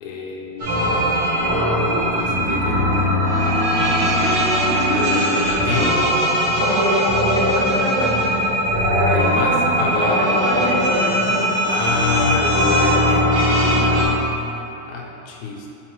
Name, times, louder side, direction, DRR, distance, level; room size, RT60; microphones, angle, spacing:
voice 1, 0.0-3.0 4.9-6.0 9.1-10.4 11.6-13.3 14.8-15.7, left 4 dB, 80° left, -1 dB, 2.0 m, -27 dB
sound 1, 0.6-14.0, equal, 55° right, 2.5 m, -19 dB
voice 2, 3.7-5.4 6.5-8.5 8.7-11.6 13.7-13.9, right 2 dB, 75° right, -5 dB, 2.4 m, -27 dB
7.2 x 5.1 x 3.0 m, 2.9 s
omnidirectional pair, 3.6 m